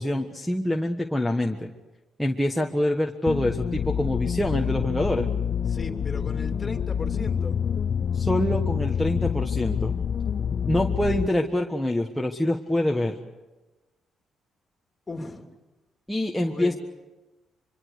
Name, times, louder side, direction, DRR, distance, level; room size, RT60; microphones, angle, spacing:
voice 1, 0.0-1.7 2.2-5.3 8.1-9.9 10.7-13.2 16.1-16.8, left 1 dB, 5° left, 0 dB, 1.5 m, -25 dB
sound 1, 3.3-11.3, left 7 dB, 50° left, 0.7 m, -27 dB
voice 2, 5.7-7.5 15.1-15.5 16.4-16.8, left 3 dB, 25° left, 4 dB, 3.0 m, -36 dB
25.0 x 24.0 x 6.6 m, 1.1 s
cardioid pair, 90°, 0 cm